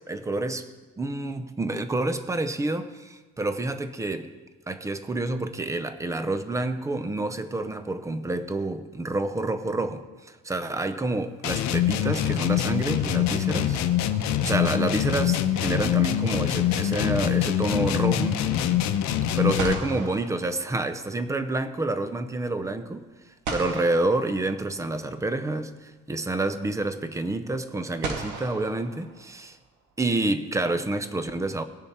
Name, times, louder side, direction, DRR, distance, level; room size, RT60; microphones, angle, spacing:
voice 1, 0.1-0.7 1.0-4.3 4.7-13.8 14.4-18.4 19.3-23.1 23.5-29.6 30.0-31.6, right 2 dB, 10° right, 10 dB, 0.5 m, -28 dB
sound 1, 11.4-19.9, left 11 dB, 60° left, 0.8 m, -24 dB
sound 2, 14.1-15.0 19.0-19.1 19.6-21.3 23.5-25.0 26.4-26.5 28.0-29.7, right 3 dB, 65° right, 2.1 m, -37 dB
19.0 x 6.7 x 4.3 m, 1.3 s
cardioid pair, 170°, 32 cm